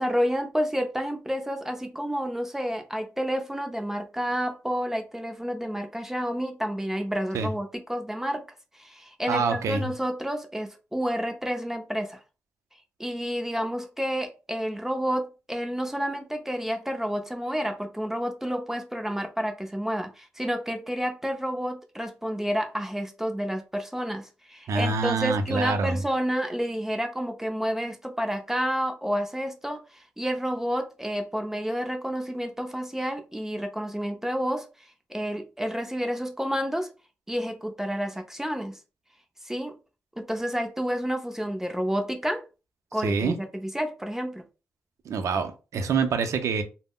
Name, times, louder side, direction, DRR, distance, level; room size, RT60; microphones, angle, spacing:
voice 1, 0.0-8.5 8.7-12.2 13.0-36.9 37.3-38.8 39.4-39.8 40.2-42.4 42.9-44.4, equal, 5° right, 0.5 m, -30 dB
voice 2, 9.3-9.9 24.7-26.0 43.0-43.4 45.1-46.6, right 4 dB, 75° right, 0.5 m, -26 dB
3.5 x 2.0 x 2.2 m
cardioid pair, 65°, 5 cm